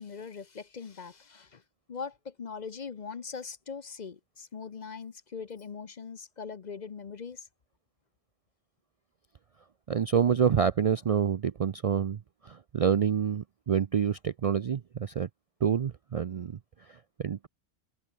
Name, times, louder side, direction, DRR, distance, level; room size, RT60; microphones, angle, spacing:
voice 1, 0.0-1.6 1.9-7.5, left 5 dB, 45° left, 0.8 m, -41 dB
voice 2, 9.9-15.3 15.6-17.5, right 7 dB, 55° right, 0.4 m, -28 dB
omnidirectional pair, 1.1 m